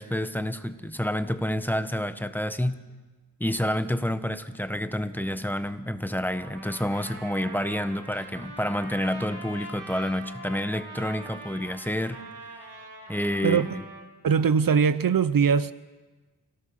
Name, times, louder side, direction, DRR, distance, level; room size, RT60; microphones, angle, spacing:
voice 1, 0.0-2.8 3.4-12.2 12.6-12.7 13.1-13.8, left 1 dB, 5° left, 1.3 m, -29 dB
Trumpet, 6.3-14.1, right 2 dB, 90° right, 4.7 m, -43 dB
voice 2, 13.4-13.7 14.2-15.7, right 6 dB, 55° right, 0.7 m, -21 dB
27.5 x 17.0 x 6.5 m
cardioid pair, 60°, 40 cm